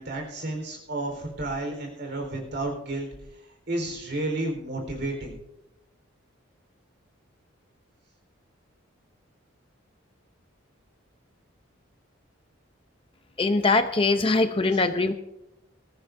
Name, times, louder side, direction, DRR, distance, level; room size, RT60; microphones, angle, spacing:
voice 1, 0.0-3.1 3.7-5.3, right 2 dB, 55° right, 2 dB, 4.2 m, -31 dB
voice 2, 13.4-15.1, left 3 dB, 25° left, 9 dB, 0.6 m, -22 dB
20.5 x 14.0 x 2.6 m, 0.89 s
head